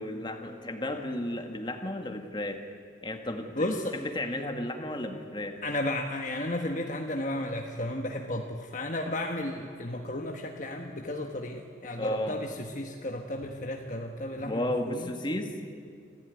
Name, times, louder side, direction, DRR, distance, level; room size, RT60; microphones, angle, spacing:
voice 1, 0.0-2.6 3.0-5.6 12.0-12.4 14.4-15.5, left 1 dB, 25° left, 5 dB, 1.8 m, -33 dB
voice 2, 3.6-3.9 5.6-15.1, left 1 dB, 40° left, 3 dB, 1.3 m, -33 dB
26.0 x 15.5 x 9.5 m, 2.2 s
head